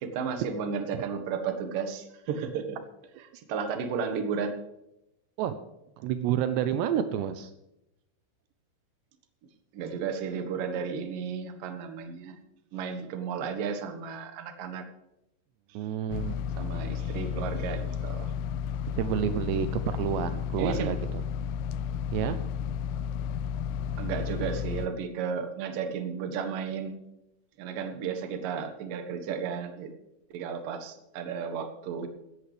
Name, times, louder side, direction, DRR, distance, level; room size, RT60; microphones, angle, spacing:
voice 1, 0.0-2.8 3.3-4.5 9.7-12.4 12.7-14.9 16.6-18.3 20.6-21.0 24.0-26.9 27.6-29.9 30.3-32.1, right 6 dB, 65° right, 6 dB, 2.3 m, -33 dB
voice 2, 6.0-7.5 15.7-16.4 19.0-21.2 22.1-22.4, right 10 dB, 90° right, 10 dB, 2.4 m, -29 dB
sound 1, 16.1-24.9, left 7 dB, 85° left, 2.7 m, -32 dB
17.5 x 14.0 x 3.4 m, 0.86 s
omnidirectional pair, 5.7 m